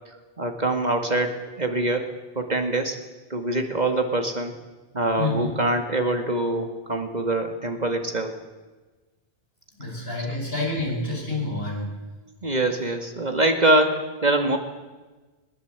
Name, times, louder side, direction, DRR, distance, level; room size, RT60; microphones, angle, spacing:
voice 1, 0.4-2.1 2.4-3.0 3.3-4.5 4.9-8.3 12.4-14.6, right 2 dB, 45° right, 5 dB, 2.3 m, -24 dB
voice 2, 5.2-5.5 9.8-12.0, left 2 dB, 70° left, -1 dB, 6.8 m, -28 dB
20.5 x 20.0 x 8.3 m, 1.2 s
omnidirectional pair, 1.0 m